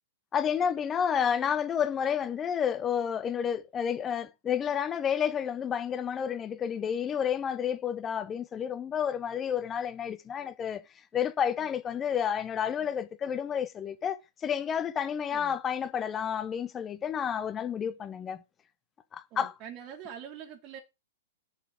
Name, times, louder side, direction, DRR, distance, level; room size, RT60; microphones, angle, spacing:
voice 1, 0.3-10.8 11.1-18.4 19.1-19.5, left 8 dB, 20° left, 1.1 m, -30 dB
voice 2, 19.3-20.8, right 9 dB, 35° right, 2.1 m, -44 dB
7.2 x 7.1 x 7.6 m
figure-of-eight pair, 105°, 0 cm